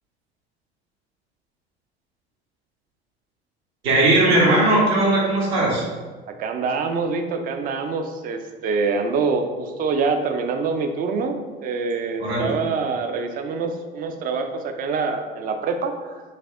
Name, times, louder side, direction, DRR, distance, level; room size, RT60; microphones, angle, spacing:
voice 1, 3.8-5.8 12.2-12.5, right 2 dB, 70° right, -5 dB, 1.4 m, -18 dB
voice 2, 6.4-11.3 11.6-16.2, right 4 dB, 30° right, 6 dB, 0.4 m, -25 dB
3.3 x 3.3 x 3.6 m, 1.4 s
figure-of-eight pair, 65°, 32 cm